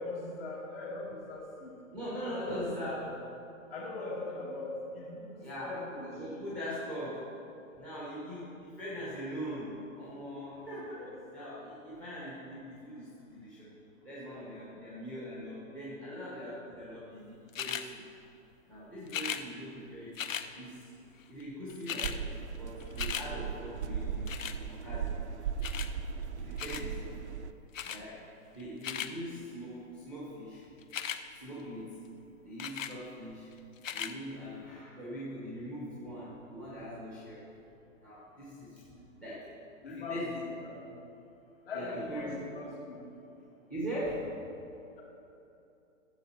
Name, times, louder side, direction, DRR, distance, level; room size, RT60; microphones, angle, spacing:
voice 1, 0.0-1.7 2.2-3.1 3.7-5.3 5.6-6.4 10.8-11.2 38.9-39.0 39.8-40.9 41.7-43.0, left 2 dB, 45° left, -4 dB, 2.9 m, -40 dB
voice 2, 1.9-3.0 5.4-7.2 7.8-11.0 11.3-13.7 14.0-18.0 18.7-20.1 20.5-20.9 21.3-22.2 22.6-24.3 24.7-25.2 26.4-27.1 27.8-28.2 28.5-30.6 31.4-32.0 32.4-33.5 33.9-37.5 38.0-38.8 39.2-39.5 39.8-40.4 41.7-42.3 43.7-44.3, equal, 5° left, -9 dB, 1.0 m, -41 dB
sound 1, 17.5-17.9 19.1-19.4 20.2-20.5 21.4-21.5 21.7-22.2 22.6-23.3 24.3-24.6 25.6-25.9 26.6-26.9 27.7-28.0 28.6-29.1 30.8-31.2 32.6-33.0 33.8-34.1 34.8-34.9, left 8 dB, 75° left, 0.8 m, -37 dB
sound 2, 22.0-27.5, right 6 dB, 60° right, 0.6 m, -37 dB
14.0 x 7.8 x 4.3 m, 2.8 s
hypercardioid pair, 170°, 40 cm